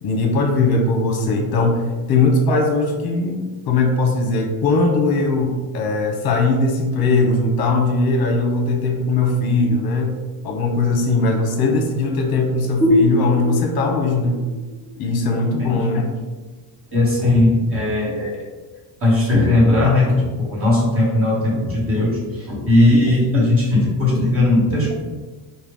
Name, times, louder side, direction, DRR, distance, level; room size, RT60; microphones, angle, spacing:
voice 1, 0.0-10.2 10.4-14.4 15.0-16.1 24.1-24.3, left 3 dB, 50° left, 2 dB, 0.8 m, -19 dB
sound 1, 12.8-16.2, left 1 dB, 5° left, 0.8 m, -23 dB
voice 2, 16.9-18.4 19.0-24.9, left 2 dB, 25° right, -5 dB, 1.2 m, -17 dB
4.6 x 2.2 x 3.5 m, 1.3 s
cardioid pair, 160°, 50 cm